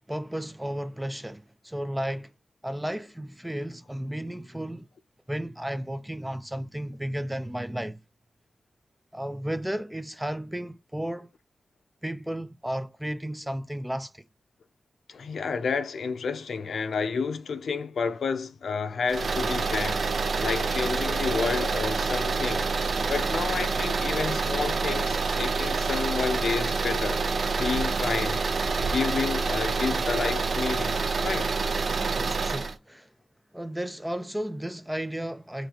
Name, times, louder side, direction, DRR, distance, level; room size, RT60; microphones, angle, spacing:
voice 1, 0.1-2.3 2.6-4.9 5.3-8.0 9.1-11.3 12.0-14.2 32.2-33.1 33.5-35.7, right 1 dB, 5° right, 0.4 m, -33 dB
voice 2, 15.1-20.0 20.4-22.7 23.1-27.2 27.6-28.4 28.8-31.5, left 5 dB, 80° left, 0.6 m, -30 dB
sound 1, 19.1-32.7, right 4 dB, 60° right, 0.6 m, -27 dB
3.9 x 2.8 x 4.4 m
wide cardioid pair, 135°, 0 cm